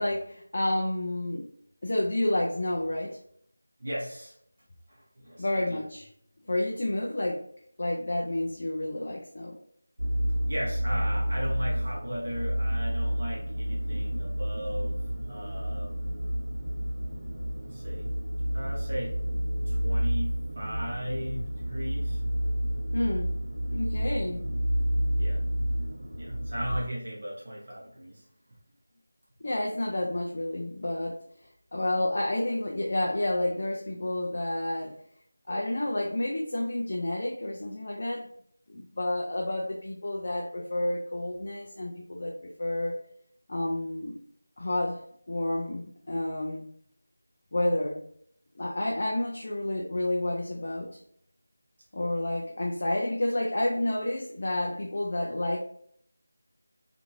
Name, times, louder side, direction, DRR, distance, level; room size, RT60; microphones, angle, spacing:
voice 1, 0.0-1.5 1.8-3.2 5.4-6.1 6.5-7.5 7.8-9.6 14.1-14.2 22.9-24.5 29.4-31.2 31.7-35.0 35.5-38.3 38.7-43.0 43.5-44.2 44.6-46.7 47.5-48.0 48.6-51.0 51.9-55.6, left 1 dB, 35° left, -1 dB, 0.3 m, -30 dB
voice 2, 3.8-4.3 4.9-5.8 10.2-15.0 15.3-15.9 17.7-18.1 18.5-19.2 19.7-20.3 20.6-22.2 25.2-25.4 26.2-28.2, equal, 40° right, -5 dB, 0.7 m, -37 dB
sound 1, 10.0-26.8, equal, 80° right, 0.6 m, -30 dB
2.6 x 2.5 x 3.0 m, 0.65 s
figure-of-eight pair, 180°, 0 cm